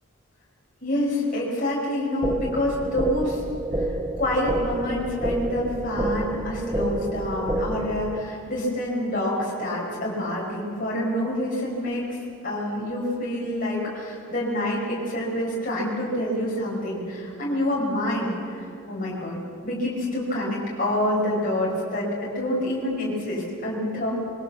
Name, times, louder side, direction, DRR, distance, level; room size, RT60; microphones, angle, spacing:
voice 1, 0.8-3.4 4.2-12.1 12.4-24.1, left 1 dB, 40° left, -4 dB, 5.6 m, -27 dB
sound 1, 2.2-8.2, right 1 dB, 15° right, 1.0 m, -29 dB
22.5 x 21.0 x 7.3 m, 2.7 s
head